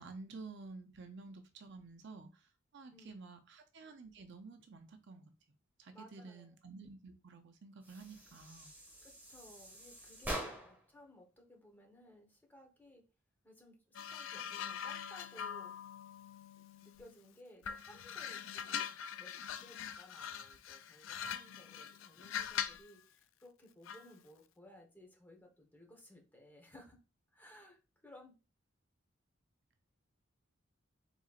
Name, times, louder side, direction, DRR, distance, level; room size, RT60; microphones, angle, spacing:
voice 1, 0.0-5.3 5.8-8.7, right 3 dB, 65° right, 6 dB, 0.6 m, -51 dB
voice 2, 2.9-3.3 5.9-6.5 9.0-13.0 13.4-15.7 16.5-27.0 27.3-28.4, left 1 dB, 10° left, 1 dB, 1.1 m, -59 dB
sound 1, 7.8-10.9, right 1 dB, 10° right, 1.7 m, -45 dB
sound 2, 13.9-17.2 17.6-22.9 23.9-24.1, left 8 dB, 75° left, 0.4 m, -43 dB
4.3 x 3.8 x 2.4 m, 0.32 s
head